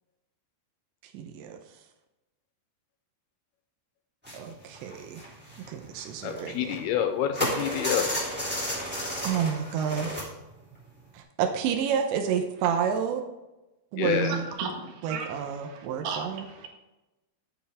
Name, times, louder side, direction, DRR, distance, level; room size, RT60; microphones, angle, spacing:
voice 1, 1.1-1.6 4.3-5.3 5.7-6.8 9.2-10.2 11.1-13.2 13.9-14.4 15.0-16.5, right 7 dB, 85° right, 4 dB, 3.2 m, -29 dB
sound 1, 4.3-4.5 4.7-7.0 7.3-10.3 10.7-10.9 11.2-11.3, equal, 5° right, 2.1 m, -32 dB
voice 2, 6.2-8.1 14.0-14.3, left 9 dB, 75° left, 7 dB, 2.5 m, -28 dB
voice 3, 14.0-16.8, right 5 dB, 65° right, 1 dB, 3.4 m, -36 dB
13.0 x 8.1 x 3.6 m, 1.0 s
omnidirectional pair, 5.1 m